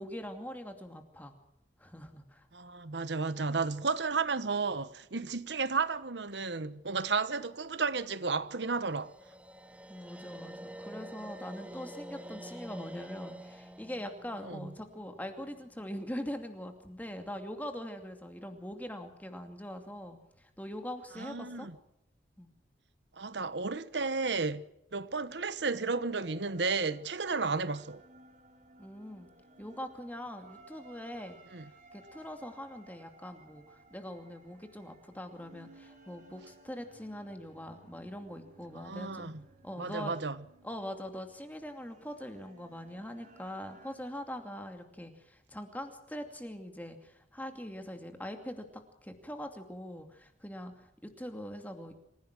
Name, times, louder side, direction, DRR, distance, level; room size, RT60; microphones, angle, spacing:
voice 1, 0.0-1.3 1.8-2.5 9.9-21.7 22.4-22.5 28.8-29.3 29.6-31.4 31.9-39.3 39.6-40.1 40.6-51.9, equal, 10° left, 2.6 m, -42 dB
voice 2, 2.5-9.1 14.4-14.7 21.2-21.7 23.2-24.6 24.9-28.0 31.5-31.6 38.7-39.4 39.8-40.4, right 4 dB, 90° right, 1.2 m, -33 dB
sound 1, 8.6-15.7, equal, 10° right, 1.0 m, -48 dB
sound 2, 25.7-44.0, right 2 dB, 45° right, 4.2 m, -58 dB
27.0 x 16.5 x 6.2 m
head